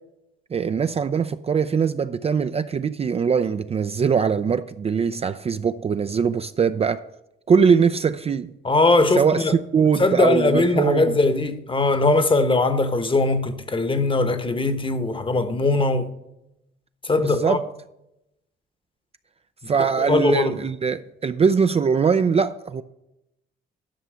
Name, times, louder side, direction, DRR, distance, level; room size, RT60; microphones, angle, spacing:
voice 1, 0.5-7.0 7.5-8.5 9.2-11.1 17.2-17.6 19.7-22.8, right 6 dB, 30° right, 0.4 m, -21 dB
voice 2, 8.6-9.6 10.0-16.1 17.0-17.6 20.0-20.5, left 2 dB, 25° left, 1.0 m, -20 dB
11.5 x 5.7 x 6.3 m
cardioid pair, 90°, 20 cm